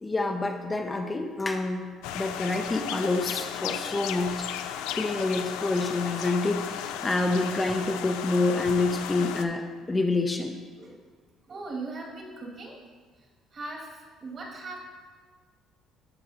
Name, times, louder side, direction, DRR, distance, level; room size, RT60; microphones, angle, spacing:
voice 1, 0.0-1.8 2.1-4.5 4.9-10.6, left 2 dB, 20° left, 4 dB, 0.6 m, -27 dB
sound 1, 2.0-9.5, left 9 dB, 85° left, 0.4 m, -34 dB
voice 2, 11.5-12.8 13.5-14.8, right 3 dB, 50° right, -1 dB, 2.0 m, -39 dB
12.5 x 4.8 x 2.8 m, 1.5 s
supercardioid pair, 75°, 0 cm